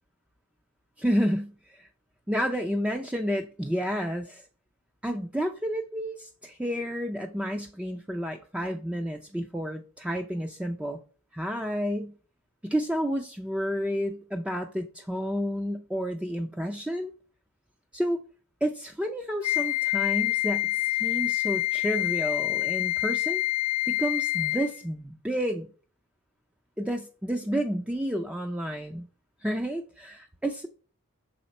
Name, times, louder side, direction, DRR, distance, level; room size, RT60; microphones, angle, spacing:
voice 1, 1.0-1.9 2.3-4.4 5.0-11.0 11.3-12.1 12.6-17.1 17.9-18.2 18.6-23.5 23.9-25.7 26.8-29.1 29.4-30.7, equal, 5° right, 0.4 m, -30 dB
Wind instrument woodwind instrument, 19.4-24.8, left 15 dB, 90° left, 0.5 m, -27 dB
6.5 x 4.2 x 4.1 m
head